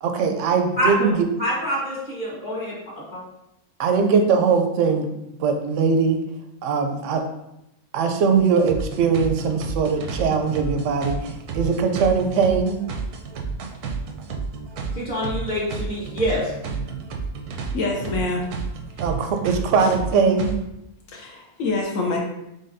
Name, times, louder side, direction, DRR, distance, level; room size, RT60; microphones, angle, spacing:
voice 1, 0.0-1.3 3.8-5.1 5.4-6.2 6.6-7.2 7.9-11.2 11.5-12.8 19.0-20.5, right 5 dB, 70° right, 5 dB, 0.8 m, -20 dB
voice 2, 1.4-2.7 3.1-3.2 14.9-16.5, equal, 30° left, -5 dB, 1.2 m, -25 dB
sound 1, 8.3-20.6, right 4 dB, 85° right, 1.1 m, -31 dB
voice 3, 17.7-18.5 19.0-19.1 19.8-19.9 21.1-22.2, left 3 dB, 65° left, -1 dB, 1.0 m, -26 dB
4.0 x 3.8 x 2.5 m, 0.86 s
omnidirectional pair, 1.6 m